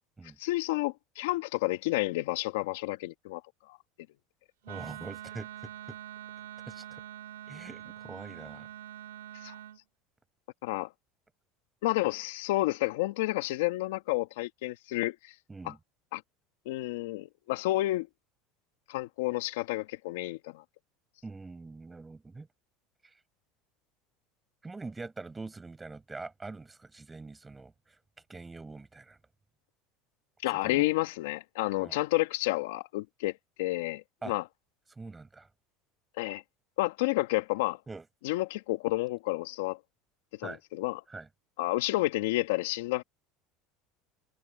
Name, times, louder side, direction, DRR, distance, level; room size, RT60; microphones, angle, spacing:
voice 1, 0.4-3.4 3.7-3.8 9.4-9.5 10.6-10.9 11.8-15.3 15.6-15.7 16.1-16.2 16.6-18.1 18.9-20.6 30.4-33.3 33.6-34.4 36.2-36.4 36.8-37.8 38.2-39.8 40.4-41.0 41.6-43.0, left 19 dB, 80° left, 1.5 m, -30 dB
voice 2, 4.6-6.0 6.7-7.0 7.5-8.7 15.5-15.8 21.2-22.5 23.0-23.1 24.6-28.0 28.3-29.2 30.5-30.8 31.8-32.0 34.2-34.3 34.9-35.5 37.9-38.0 40.4-40.6 41.1-41.3, right 3 dB, 15° right, 7.7 m, -44 dB
Wind instrument woodwind instrument, 4.6-9.8, right 12 dB, 90° right, 2.5 m, -45 dB
hypercardioid pair, 90°, 0 cm